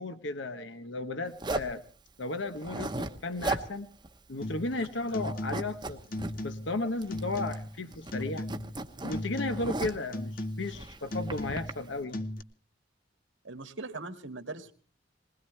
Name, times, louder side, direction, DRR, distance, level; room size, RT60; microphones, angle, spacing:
voice 1, 0.0-1.8 2.2-3.9 4.3-6.0 6.4-8.5 9.0-12.2, left 2 dB, 65° left, 9 dB, 1.0 m, -34 dB
Zipper (clothing), 1.4-1.8 2.5-3.7 4.0-4.1 4.5-4.9 5.2-6.3 7.0-7.7 7.9-10.1 10.7-11.7, right 2 dB, 20° right, 1.0 m, -36 dB
sound 1, 4.4-4.8 5.1-5.8 6.1-6.8 7.1-7.8 8.1-8.8 9.1-9.8 10.1-10.8 11.1-11.8 12.1-12.4, left 1 dB, 45° left, 1.0 m, -37 dB
voice 2, 13.4-14.7, right 3 dB, 75° right, 7 dB, 1.9 m, -40 dB
21.0 x 20.0 x 3.2 m, 0.40 s
head